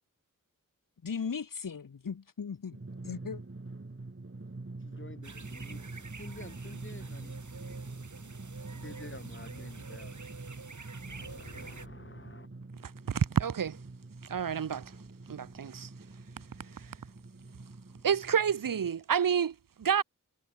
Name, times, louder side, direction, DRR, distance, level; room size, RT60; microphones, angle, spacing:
voice 1, 1.0-2.8 3.0-3.4, left 6 dB, 80° left, 1.9 m, -37 dB
Drum, 2.7-18.9, right 2 dB, 40° right, 5.1 m, -46 dB
voice 2, 4.8-7.4 8.8-10.3 11.1-12.5, left 2 dB, 35° left, 7.4 m, -49 dB
sound 1, 5.2-11.9, right 4 dB, 60° right, 3.4 m, -47 dB
voice 3, 13.1-13.8 14.3-14.9 15.3-15.9 18.0-20.0, right 7 dB, 85° right, 1.0 m, -29 dB
cardioid pair, 45°, 33 cm